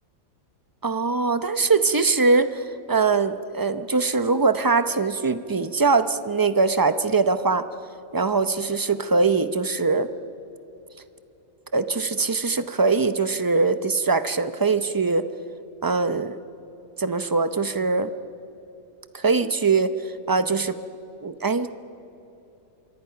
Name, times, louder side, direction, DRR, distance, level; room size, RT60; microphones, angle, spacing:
voice 1, 0.8-7.6 8.1-10.1 11.7-15.3 15.8-16.4 17.0-18.1 19.1-19.9 20.3-20.8 21.2-21.7, right 4 dB, 25° right, 11 dB, 0.4 m, -22 dB
27.0 x 23.5 x 5.8 m, 3.0 s
omnidirectional pair, 1.5 m